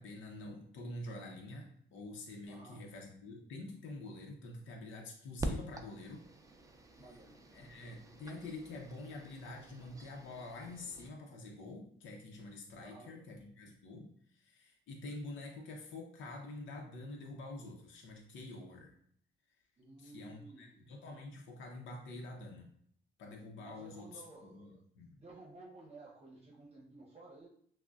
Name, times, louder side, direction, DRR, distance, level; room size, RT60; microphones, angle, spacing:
voice 1, 0.0-6.2 7.5-18.9 20.0-22.7 23.2-25.1, left 2 dB, 75° left, 1 dB, 0.7 m, -47 dB
voice 2, 2.5-2.9 7.0-7.4 12.8-13.2 19.8-20.9 23.6-24.8 25.1-27.5, right 2 dB, 30° right, -4 dB, 0.9 m, -54 dB
sound 1, 5.4-11.1, right 1 dB, 15° right, 0.4 m, -46 dB
5.9 x 2.1 x 2.4 m, 0.65 s
cardioid pair, 90°, 20 cm